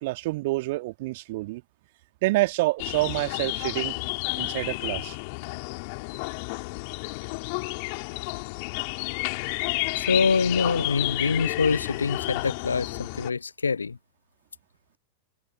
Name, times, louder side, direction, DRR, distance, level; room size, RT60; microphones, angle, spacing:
voice 1, 0.0-1.6 2.2-3.9 4.4-5.2, right 20 dB, 50° right, 1.9 m, -27 dB
sound 1, 2.8-13.3, left 31 dB, 45° left, 3.4 m, -31 dB
voice 2, 9.9-14.0, left 5 dB, 75° left, 0.3 m, -25 dB
figure-of-eight pair, 90°, 0 cm